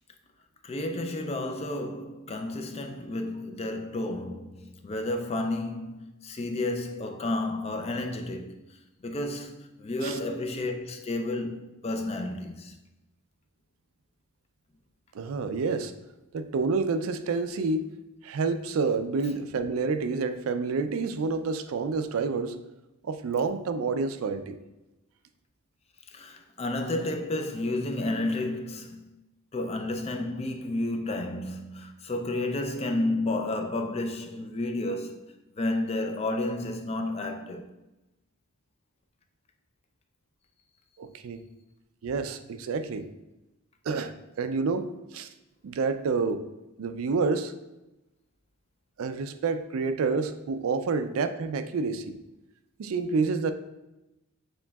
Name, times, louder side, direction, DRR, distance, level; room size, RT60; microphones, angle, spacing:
voice 1, 0.6-8.5 9.0-12.8 26.1-29.0 29.5-35.3 35.6-37.7, left 2 dB, 30° left, 0.4 m, -31 dB
voice 2, 15.1-15.9 16.3-17.9 18.2-22.6 23.0-24.6 41.0-41.4 42.0-43.1 43.9-44.1 44.4-45.3 45.6-46.4 46.8-47.5 49.0-52.0 52.8-53.5, right 4 dB, 70° right, 0.4 m, -28 dB
7.2 x 3.0 x 2.3 m
head